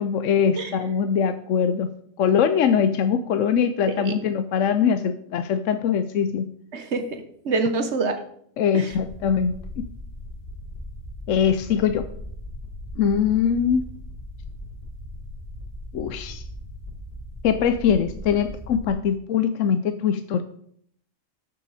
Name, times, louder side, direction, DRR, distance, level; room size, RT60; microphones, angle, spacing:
voice 1, 0.0-1.9 2.2-6.5 8.6-9.9 11.3-12.1 13.0-13.8 15.9-16.4 17.4-20.4, left 7 dB, 75° left, 9 dB, 0.9 m, -22 dB
voice 2, 6.7-8.2 8.7-8.9, right 3 dB, 55° right, 7 dB, 1.5 m, -26 dB
sound 1, 8.9-18.9, left 1 dB, 30° left, 2.6 m, -38 dB
13.0 x 6.9 x 4.1 m, 0.67 s
omnidirectional pair, 1.4 m